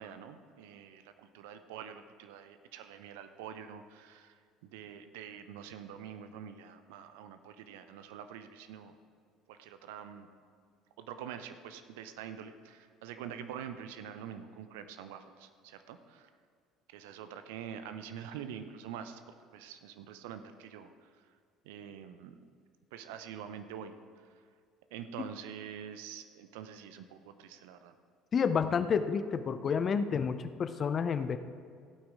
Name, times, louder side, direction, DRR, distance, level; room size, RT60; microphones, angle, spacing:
voice 1, 0.0-9.0 9.5-10.3 11.0-16.3 16.9-19.2 19.5-20.9 21.2-21.3 21.6-22.4 22.9-24.4 24.9-27.9, right 8 dB, 70° right, 10 dB, 0.6 m, -46 dB
voice 2, 28.3-31.4, left 6 dB, 40° left, 11 dB, 0.6 m, -30 dB
15.5 x 8.8 x 3.6 m, 2.1 s
figure-of-eight pair, 60°, 0 cm